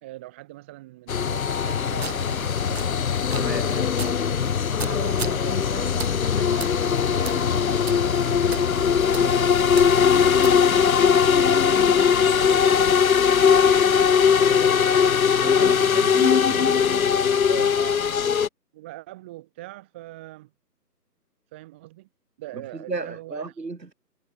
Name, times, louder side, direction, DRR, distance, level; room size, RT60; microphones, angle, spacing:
voice 1, 0.0-3.0 3.4-4.2 4.8-10.6 11.1-15.2 15.5-17.0 17.8-18.3 18.7-20.5 21.5-22.1 22.4-23.6, right 17 dB, 5° right, 1.5 m, -43 dB
sound 1, 1.1-18.5, left 7 dB, 60° left, 0.6 m, -20 dB
sound 2, 2.0-11.0, right 5 dB, 40° right, 1.9 m, -39 dB
voice 2, 3.3-3.7 15.4-16.7 17.5-17.8 22.7-23.9, right 3 dB, 80° right, 6.0 m, -34 dB
sound 3, 6.3-13.0, left 4 dB, 75° left, 3.9 m, -38 dB
figure-of-eight pair, 165°, 49 cm